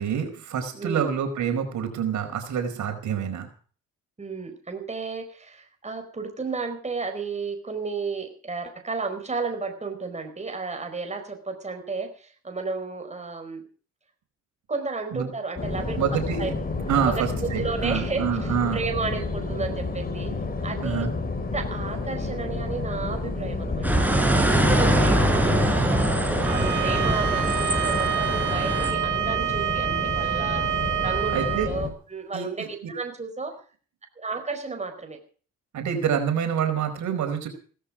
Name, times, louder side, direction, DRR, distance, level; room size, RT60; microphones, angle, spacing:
voice 1, 0.0-3.5 15.1-15.3 16.0-16.5 16.9-18.8 20.8-21.1 31.3-31.7 32.3-32.7 35.7-37.5, right 8 dB, 70° right, 6 dB, 4.9 m, -27 dB
voice 2, 0.7-1.1 4.2-13.6 14.7-16.5 17.0-20.3 20.6-21.1 21.5-26.2 26.5-30.7 31.0-33.5 34.2-35.2, right 4 dB, 20° right, 5 dB, 4.7 m, -33 dB
sound 1, 15.6-31.9, left 3 dB, 30° left, 4.9 m, -30 dB
sound 2, 23.8-28.9, right 1 dB, 5° right, 5.0 m, -23 dB
Bowed string instrument, 26.4-31.7, right 12 dB, 85° right, 2.9 m, -27 dB
17.5 x 14.0 x 5.0 m, 0.42 s
cardioid pair, 90°, 30 cm